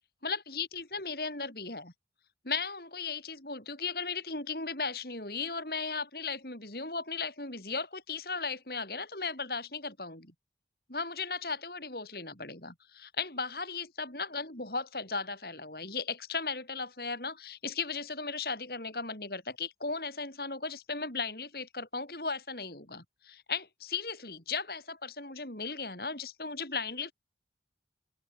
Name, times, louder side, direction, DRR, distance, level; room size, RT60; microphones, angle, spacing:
voice 1, 0.2-1.9 2.4-10.3 10.9-27.1, left 4 dB, 55° left, 5.2 m, -36 dB
open air
head